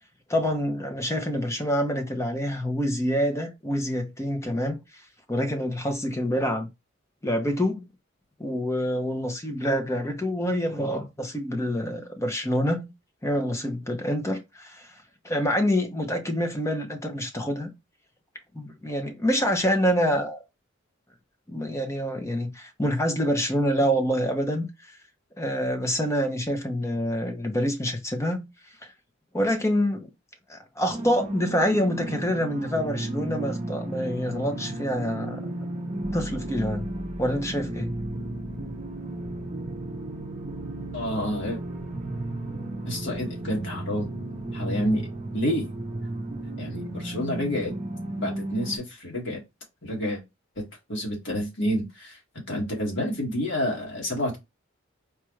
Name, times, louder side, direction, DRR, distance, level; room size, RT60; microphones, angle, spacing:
voice 1, 0.3-4.8 5.3-6.7 7.2-7.9 8.4-12.9 13.2-14.9 15.2-17.7 18.5-20.4 21.5-24.7 25.4-28.5 29.3-30.1 30.5-35.5 36.1-36.9 37.2-37.9, equal, 15° left, 0.7 m, -26 dB
sound 1, 30.9-48.8, right 1 dB, 35° right, 0.7 m, -34 dB
voice 2, 40.9-41.6 42.9-44.1 44.5-45.1 45.3-45.7 46.6-47.7 48.2-49.4 49.8-50.2 50.6-52.2 52.5-54.4, equal, 60° left, 1.9 m, -29 dB
4.6 x 2.4 x 3.1 m
head